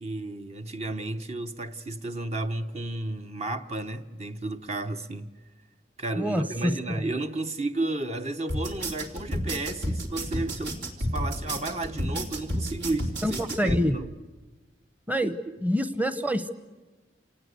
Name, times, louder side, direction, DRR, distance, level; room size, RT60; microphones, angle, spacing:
voice 1, 0.0-5.3 6.0-10.8 11.1-14.1 15.2-15.6, right 2 dB, 35° right, 0.8 m, -32 dB
voice 2, 6.2-7.1 13.2-14.0 15.1-15.3 15.6-16.5, equal, 10° right, 0.8 m, -26 dB
sound 1, 8.5-13.8, equal, 80° right, 3.8 m, -30 dB
28.0 x 19.0 x 8.2 m
head